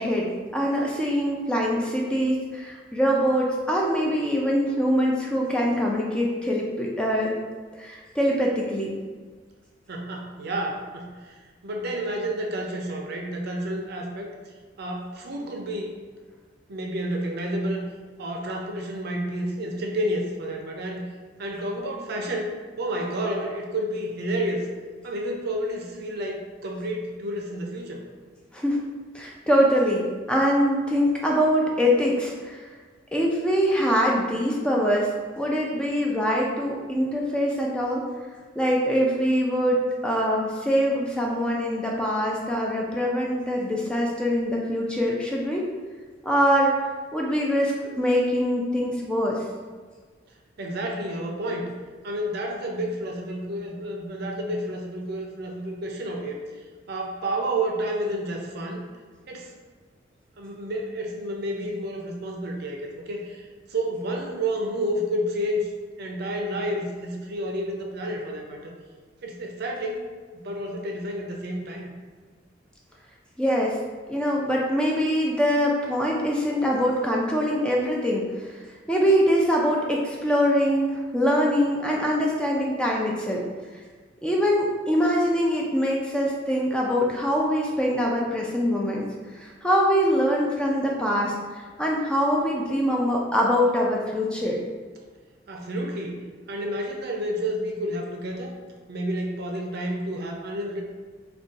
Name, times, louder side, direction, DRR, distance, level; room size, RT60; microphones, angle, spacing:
voice 1, 0.0-7.3 7.8-8.9 28.5-28.8 29.1-32.6 33.1-35.1 35.4-38.0 38.5-45.7 46.2-46.7 47.1-49.4 73.4-73.8 74.1-78.6 78.9-83.4 84.2-89.0 89.3-94.6, equal, 5° left, -2 dB, 0.3 m, -23 dB
voice 2, 9.9-16.0 16.7-17.8 18.2-21.1 21.4-24.7 25.0-28.0 50.6-51.7 52.0-56.4 56.9-58.8 59.3-59.5 60.4-65.7 66.0-68.7 69.2-70.1 70.3-71.9 95.5-98.5 98.9-100.8, right 1 dB, 55° right, 1 dB, 0.5 m, -30 dB
2.6 x 2.3 x 3.7 m, 1.5 s
head